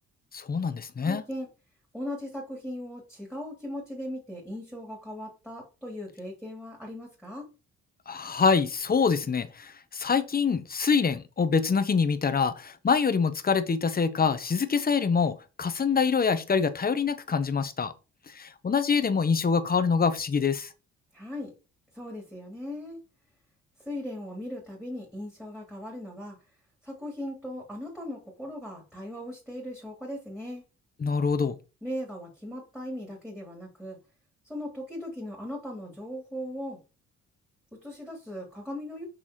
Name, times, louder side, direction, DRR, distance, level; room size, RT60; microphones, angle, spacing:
voice 1, 0.3-1.2 8.1-17.9 18.3-20.7 31.0-31.6, left 5 dB, 30° left, 0.9 m, -25 dB
voice 2, 1.0-1.5 1.9-7.5 21.1-21.5 21.9-23.0 23.8-26.4 26.8-30.6 31.8-34.0 34.4-36.8 37.7-39.0, left 1 dB, ahead, 3.3 m, -38 dB
6.2 x 6.1 x 3.1 m
cardioid pair, 90°, 30 cm